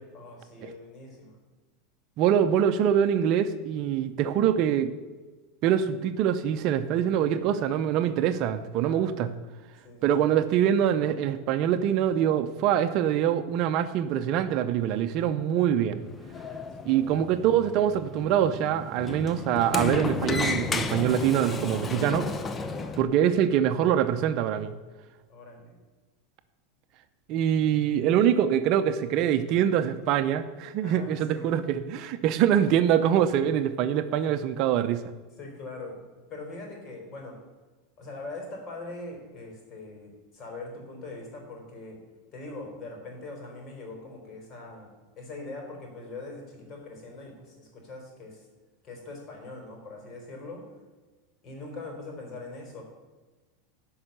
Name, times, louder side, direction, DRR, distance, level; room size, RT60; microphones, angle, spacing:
voice 1, 0.1-1.4 8.7-9.1 9.8-10.1 16.8-17.0 22.7-23.0 25.3-25.7 30.8-31.5 32.3-32.5 35.4-36.0 36.3-37.4 38.0-42.0 42.3-48.4 48.8-50.7 51.4-52.8, left 2 dB, 35° left, 1 dB, 4.4 m, -42 dB
voice 2, 2.2-4.9 5.6-9.3 10.0-16.0 16.8-22.3 23.0-24.7 27.3-35.0, right 9 dB, 50° right, 10 dB, 0.7 m, -24 dB
Sliding door, 16.0-23.0, left 3 dB, 20° left, 0.8 m, -33 dB
11.5 x 5.5 x 8.1 m, 1.3 s
supercardioid pair, 130°, 0 cm